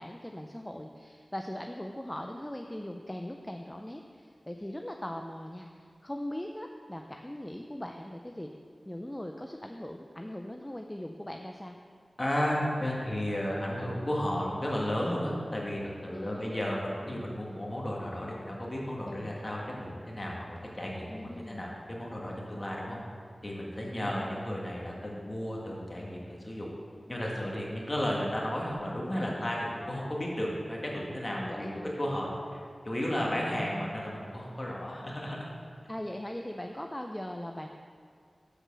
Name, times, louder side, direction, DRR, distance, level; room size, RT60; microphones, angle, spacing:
voice 1, 0.0-8.5 8.8-11.8 16.1-16.5 19.1-19.3 21.1-21.7 23.8-24.3 31.4-31.9 35.9-37.7, left 1 dB, 15° left, 3 dB, 0.4 m, -40 dB
voice 2, 12.2-23.0 23.4-26.7 27.1-35.5, left 1 dB, 30° left, -3 dB, 1.6 m, -33 dB
6.7 x 4.8 x 6.1 m, 2.1 s
wide cardioid pair, 60°, 0 cm